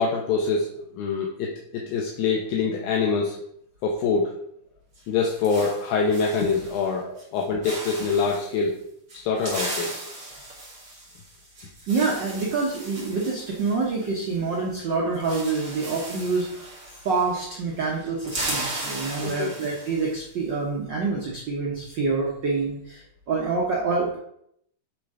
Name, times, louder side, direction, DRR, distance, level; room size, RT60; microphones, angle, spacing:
voice 1, 0.0-3.4 3.8-4.4 5.1-8.8 9.1-10.0 19.2-19.5, left 5 dB, 75° left, -1 dB, 2.2 m, -25 dB
sound 1, 4.9-6.9 7.2-7.4 7.6-8.5 9.1-14.6 14.8-14.9 15.1-17.5 17.8-20.2, right 2 dB, 30° right, 2.2 m, -36 dB
voice 2, 11.9-16.7 17.0-24.2, right 4 dB, 65° right, -3 dB, 1.1 m, -26 dB
8.9 x 3.8 x 4.9 m, 0.73 s
omnidirectional pair, 3.9 m